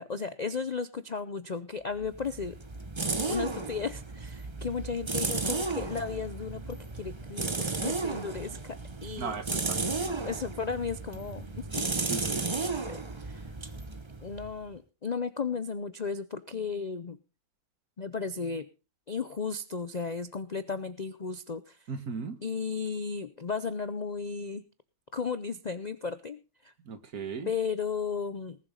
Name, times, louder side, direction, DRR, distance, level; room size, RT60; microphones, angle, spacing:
voice 1, 0.0-2.6 3.3-9.4 10.2-11.9 12.7-13.5 14.2-17.2 18.0-18.7 19.1-21.8 22.4-24.6 25.1-26.7 27.5-28.6, left 5 dB, 55° left, 0.4 m, -35 dB
sound 1, 2.0-14.7, right 3 dB, 20° right, 0.8 m, -34 dB
voice 2, 9.2-10.2 12.1-12.5 21.9-22.4 26.9-27.5, right 5 dB, 60° right, 1.9 m, -37 dB
19.5 x 7.2 x 5.2 m
omnidirectional pair, 1.8 m